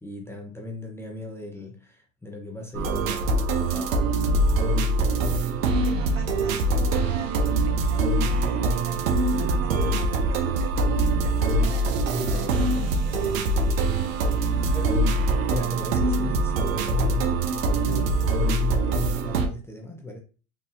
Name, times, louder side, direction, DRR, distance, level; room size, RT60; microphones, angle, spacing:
voice 1, 0.0-4.1 4.5-5.6 12.1-13.6 14.3-20.2, left 1 dB, 5° left, 0.6 m, -37 dB
sound 1, 2.7-19.5, right 2 dB, 90° right, 0.8 m, -23 dB
voice 2, 5.6-12.0 14.5-15.1, right 6 dB, 35° right, 0.6 m, -39 dB
3.8 x 2.8 x 2.6 m
supercardioid pair, 110°, 39 cm